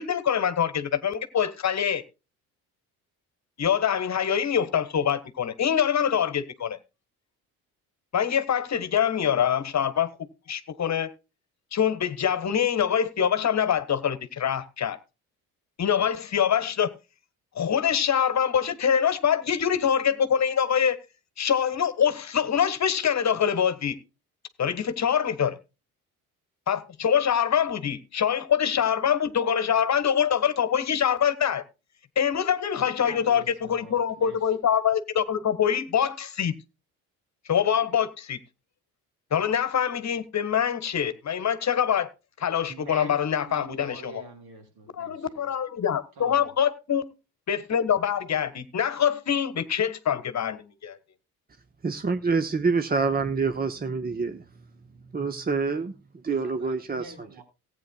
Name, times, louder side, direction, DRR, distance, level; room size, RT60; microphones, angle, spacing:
voice 1, 0.0-2.0 3.6-6.8 8.1-10.1 10.5-11.1 11.7-15.0 15.8-16.9 17.5-21.0 21.4-24.0 24.6-25.6 26.7-31.6 32.1-33.4 33.7-36.5 37.5-38.4 39.3-42.1 42.4-44.2 44.9-47.0 47.5-51.0, left 8 dB, 40° left, 1.5 m, -24 dB
voice 2, 32.8-34.5 42.7-45.6 46.2-46.5 56.2-57.4, right 3 dB, 60° right, 5.1 m, -46 dB
voice 3, 51.8-54.4 55.1-55.9 56.2-57.1, right 4 dB, 20° right, 1.1 m, -26 dB
18.5 x 9.2 x 2.3 m
figure-of-eight pair, 55°, 43 cm